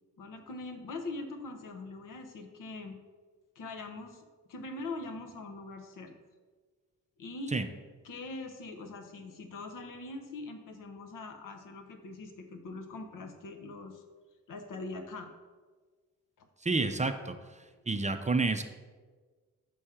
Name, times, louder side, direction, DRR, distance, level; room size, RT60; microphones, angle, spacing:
voice 1, 0.2-3.0 3.6-6.1 7.2-7.6 8.0-14.0 14.5-15.3 16.4-16.5, left 3 dB, 70° left, 6 dB, 0.9 m, -42 dB
voice 2, 16.6-17.3 17.9-18.6, right 3 dB, 20° right, 8 dB, 0.5 m, -29 dB
5.4 x 4.3 x 4.9 m, 1.4 s
cardioid pair, 60°, 33 cm